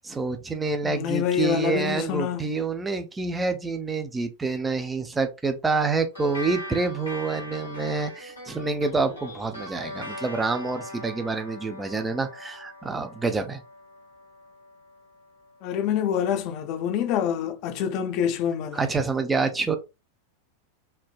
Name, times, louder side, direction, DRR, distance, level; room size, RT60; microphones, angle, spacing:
voice 1, 0.0-13.6 18.7-19.8, right 4 dB, 10° right, 0.4 m, -27 dB
voice 2, 0.8-2.5 15.6-18.8, left 9 dB, 40° left, 0.5 m, -26 dB
sound 1, 6.1-15.0, left 1 dB, 80° left, 1.1 m, -40 dB
3.2 x 2.0 x 2.3 m
figure-of-eight pair, 90°, 0 cm